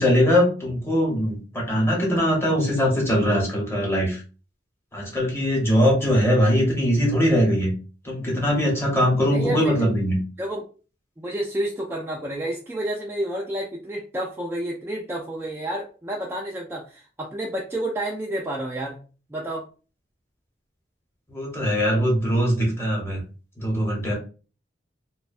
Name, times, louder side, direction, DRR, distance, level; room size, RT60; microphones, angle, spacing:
voice 1, 0.0-4.2 4.9-7.7 8.0-10.2 21.3-23.2 23.6-24.1, equal, 15° left, -3 dB, 0.9 m, -21 dB
voice 2, 9.3-9.9 10.4-10.7 11.2-19.0 19.3-19.7, right 1 dB, 15° right, -2 dB, 0.3 m, -30 dB
2.4 x 2.2 x 2.4 m, 0.36 s
head